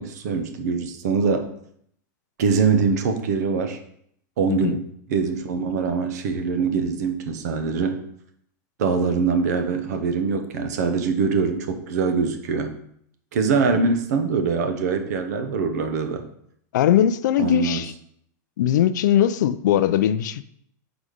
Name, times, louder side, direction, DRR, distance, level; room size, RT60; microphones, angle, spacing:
voice 1, 0.0-1.5 2.4-3.8 4.4-4.8 5.1-8.0 8.8-12.8 13.3-16.2 17.4-17.8, right 5 dB, 60° right, 0.8 m, -23 dB
voice 2, 16.7-17.9 18.6-20.4, left 10 dB, 70° left, 0.4 m, -20 dB
4.8 x 4.1 x 5.0 m
supercardioid pair, 175°, 10 cm